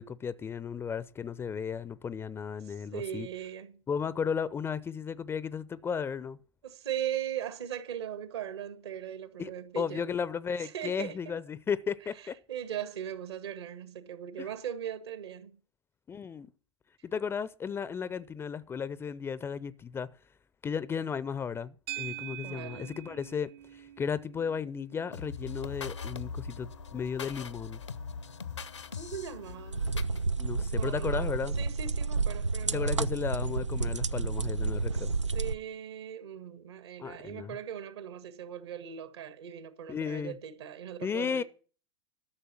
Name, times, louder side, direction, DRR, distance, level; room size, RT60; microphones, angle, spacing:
voice 1, 0.0-3.3 3.9-6.4 9.4-12.3 14.4-14.5 16.1-16.5 17.0-20.1 20.6-27.8 30.4-31.6 32.7-35.1 37.0-37.5 39.9-40.4 41.0-41.4, left 6 dB, 15° left, 0.5 m, -34 dB
voice 2, 2.6-3.8 6.6-10.1 10.6-11.4 12.2-15.6 22.4-22.9 28.9-29.9 30.7-33.1 34.9-41.4, right 10 dB, 65° right, 1.7 m, -39 dB
sound 1, 21.9-30.3, right 14 dB, 35° right, 0.8 m, -47 dB
sound 2, 25.1-30.2, left 5 dB, 80° left, 0.9 m, -41 dB
sound 3, 29.7-35.5, right 4 dB, 85° right, 0.5 m, -30 dB
13.0 x 6.7 x 7.4 m
figure-of-eight pair, 95°, 15 cm